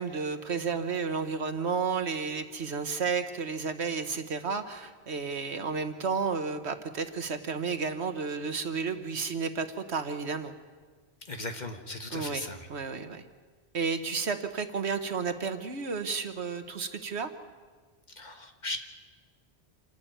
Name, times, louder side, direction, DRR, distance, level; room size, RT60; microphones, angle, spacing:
voice 1, 0.0-10.5 12.1-12.4 12.7-13.2 13.7-17.3, right 5 dB, 70° right, 9 dB, 1.5 m, -32 dB
voice 2, 11.3-12.6 18.2-18.8, left 2 dB, 40° left, 5 dB, 1.6 m, -37 dB
27.5 x 11.5 x 9.1 m, 1.5 s
omnidirectional pair, 1.2 m